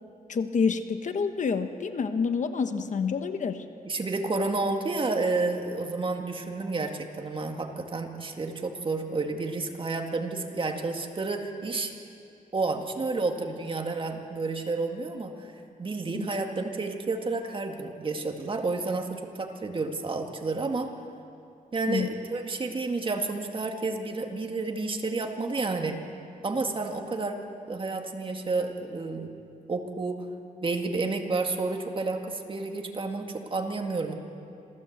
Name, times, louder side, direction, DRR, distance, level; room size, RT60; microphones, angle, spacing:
voice 1, 0.3-3.6 16.1-16.3 21.9-22.1, left 5 dB, 55° left, 8 dB, 1.2 m, -28 dB
voice 2, 3.8-11.9 12.5-15.5 15.8-20.9 21.7-25.9 26.4-27.4 27.7-29.3 29.7-30.3 30.6-34.1, right 3 dB, 35° right, 3 dB, 2.1 m, -30 dB
27.0 x 16.5 x 8.1 m, 2.5 s
wide cardioid pair, 120°, 15 cm